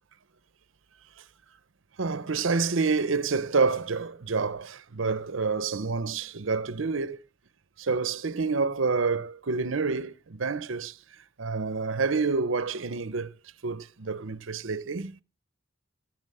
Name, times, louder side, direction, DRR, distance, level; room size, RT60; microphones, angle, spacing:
voice 1, 2.0-7.2 7.8-11.0 11.4-13.3 13.6-15.2, right 4 dB, 80° right, 0.8 m, -28 dB
17.5 x 6.2 x 7.7 m
head